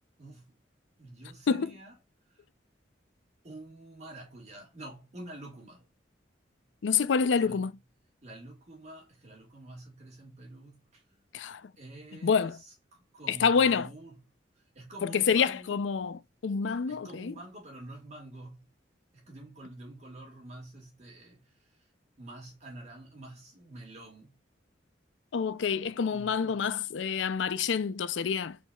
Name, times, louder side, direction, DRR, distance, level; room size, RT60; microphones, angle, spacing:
voice 1, 0.2-0.5 1.0-2.0 2.3-2.4 3.4-5.9 7.4-7.6 8.2-11.2 11.8-14.2 14.6-15.8 16.9-18.6 19.1-21.9 22.2-24.4 26.1-26.6, right 1 dB, 40° right, 1.8 m, -48 dB
voice 2, 6.8-7.7 11.3-11.6 12.2-12.6 13.3-13.9 15.0-17.3 25.3-28.6, left 6 dB, 75° left, 0.5 m, -27 dB
4.2 x 3.9 x 2.3 m
head